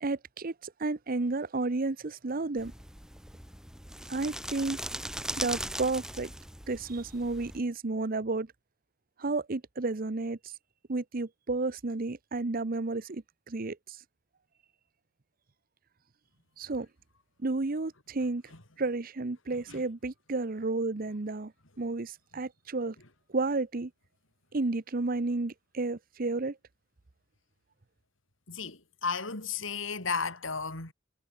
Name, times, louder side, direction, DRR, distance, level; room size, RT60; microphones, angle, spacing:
voice 1, 0.0-2.7 4.1-4.8 5.4-6.3 6.7-8.5 9.2-10.5 10.9-14.0 16.6-16.9 17.4-18.4 18.8-21.5 21.8-23.0 23.3-23.9 24.5-26.6, right 3 dB, 45° right, 0.8 m, -32 dB
sound 1, 2.6-7.6, right 1 dB, 5° right, 3.1 m, -39 dB
voice 2, 28.5-30.9, left 5 dB, 80° left, 5.1 m, -34 dB
head